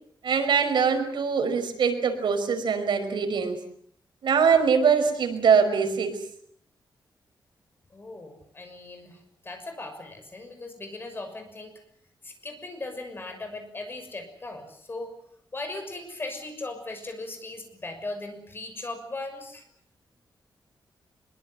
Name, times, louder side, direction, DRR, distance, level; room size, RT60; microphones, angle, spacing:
voice 1, 0.2-3.6 4.2-6.2, right 6 dB, 85° right, 6 dB, 5.2 m, -23 dB
voice 2, 7.9-9.2 9.4-11.7 12.2-15.1 15.5-19.6, left 2 dB, 30° left, 6 dB, 6.2 m, -38 dB
24.0 x 23.0 x 8.0 m, 0.64 s
wide cardioid pair, 155°, 8 cm